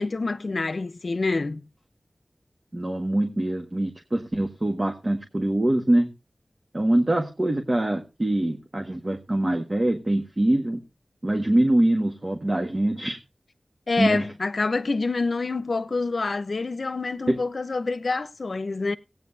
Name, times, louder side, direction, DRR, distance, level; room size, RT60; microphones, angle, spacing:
voice 1, 0.0-1.6 13.9-19.0, left 3 dB, 75° left, 0.7 m, -27 dB
voice 2, 2.7-6.1 6.7-10.8 11.2-13.2 14.0-14.2 17.3-17.4, right 1 dB, 40° right, 1.6 m, -24 dB
17.5 x 9.2 x 2.7 m
wide cardioid pair, 55°, 0 cm